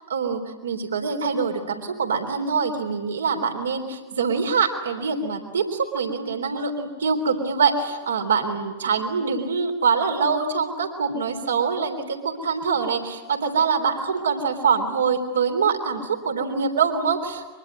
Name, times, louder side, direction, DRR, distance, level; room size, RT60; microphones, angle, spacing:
voice 1, 0.1-17.5, right 5 dB, 70° right, 5 dB, 3.6 m, -24 dB
24.0 x 24.0 x 9.7 m, 1.2 s
figure-of-eight pair, 90°, 0 cm